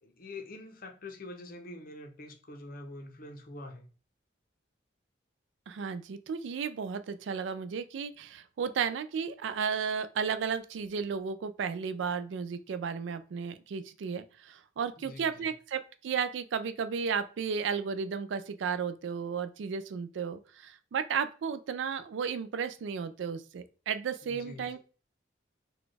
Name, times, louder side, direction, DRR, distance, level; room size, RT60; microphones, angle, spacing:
voice 1, 0.0-3.9 15.0-15.5 24.2-24.8, left 2 dB, 45° left, 0.6 m, -45 dB
voice 2, 5.7-24.8, right 6 dB, 70° right, 0.3 m, -34 dB
4.0 x 2.2 x 3.2 m
head